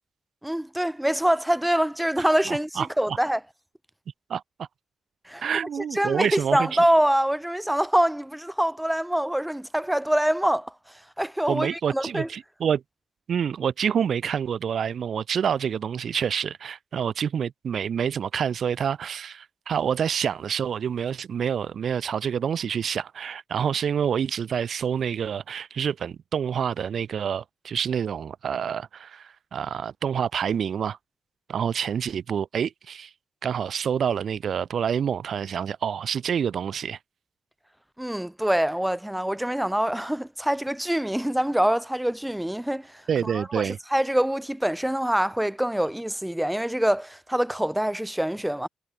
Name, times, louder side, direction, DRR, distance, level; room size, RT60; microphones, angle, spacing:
voice 1, 0.4-3.4 5.3-5.5 5.9-10.7 11.2-12.3 38.0-48.7, right 1 dB, 5° right, 1.0 m, -25 dB
voice 2, 2.2-3.2 4.3-4.7 5.4-6.8 11.5-12.8 13.3-31.0 31.5-33.1 33.4-37.0 43.1-43.8, right 8 dB, 55° right, 1.3 m, -27 dB
cardioid pair, 90°, 0 cm